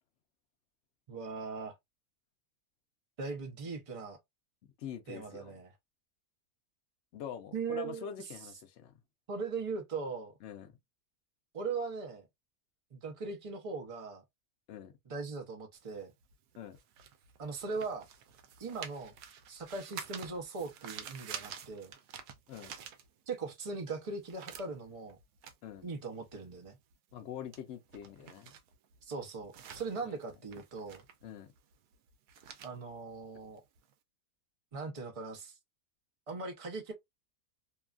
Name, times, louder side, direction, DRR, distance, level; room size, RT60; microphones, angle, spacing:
voice 1, 1.1-1.7 3.2-4.2 5.1-5.7 7.5-8.1 9.3-10.3 11.5-12.3 12.9-14.2 15.1-16.1 17.4-18.1 18.6-19.1 19.5-21.9 23.3-25.2 25.8-26.8 29.0-31.1 32.6-33.6 34.7-35.5 36.3-36.9, right 4 dB, 45° right, 0.4 m, -39 dB
voice 2, 4.8-5.5 7.1-8.9 10.4-10.7 14.7-14.9 16.6-16.8 22.5-22.7 25.6-25.9 27.1-28.5 30.1-30.2 31.2-31.5, left 9 dB, 65° left, 0.7 m, -44 dB
sound 1, 15.8-23.5 23.8-33.9, right 8 dB, 85° right, 1.1 m, -49 dB
2.9 x 2.3 x 2.4 m
omnidirectional pair, 1.6 m